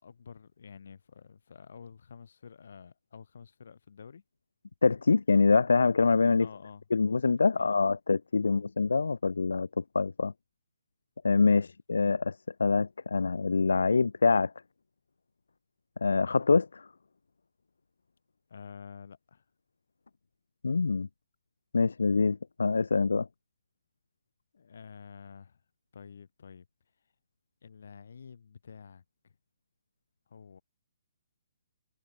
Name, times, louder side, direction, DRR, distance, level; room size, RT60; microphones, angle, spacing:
voice 1, 0.0-4.2 6.4-6.8 7.6-7.7 8.5-8.6 11.5-12.0 18.5-19.4 24.5-25.6 25.9-26.7 27.6-29.4 30.3-30.6, left 6 dB, 65° left, 5.3 m, -49 dB
voice 2, 4.8-6.5 6.9-10.3 11.2-14.5 16.0-16.8 20.6-21.1 21.7-23.3, left 4 dB, 85° left, 0.3 m, -25 dB
hypercardioid pair, 150°, 0 cm